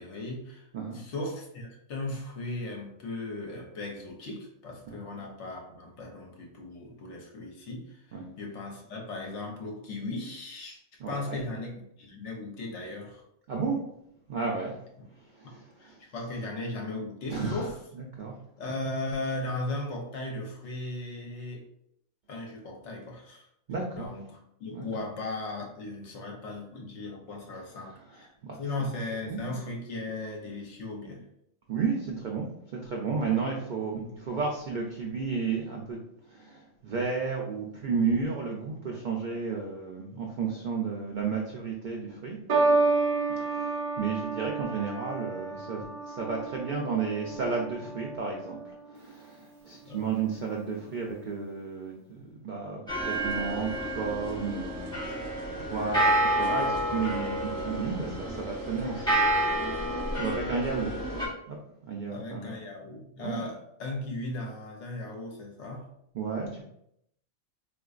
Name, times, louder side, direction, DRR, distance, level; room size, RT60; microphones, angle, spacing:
voice 1, 0.0-0.7 0.9-10.8 11.1-13.2 15.0-15.1 15.4-17.7 18.6-21.7 22.3-23.5 23.9-24.3 24.6-28.3 28.6-31.3 49.8-50.1 62.1-65.9, left 2 dB, 65° left, 1 dB, 1.0 m, -37 dB
voice 2, 11.0-11.4 13.5-13.8 14.3-14.8 15.2-16.0 17.3-17.7 17.9-18.4 23.7-24.1 24.7-25.0 28.1-28.6 29.2-29.6 31.7-32.5 32.7-36.0 36.3-42.4 43.4-48.6 48.9-53.7 53.9-55.3 55.6-59.2 60.2-61.0 61.5-61.6 61.8-62.5 63.2-63.4 66.1-66.7, right 5 dB, 85° right, -1 dB, 0.4 m, -33 dB
sound 1, 42.5-49.0 49.9-50.3, right 3 dB, 45° right, 0.7 m, -30 dB
sound 2, 52.9-61.3, right 1 dB, 5° left, 0.8 m, -29 dB
3.7 x 2.4 x 2.4 m, 0.74 s
omnidirectional pair, 1.4 m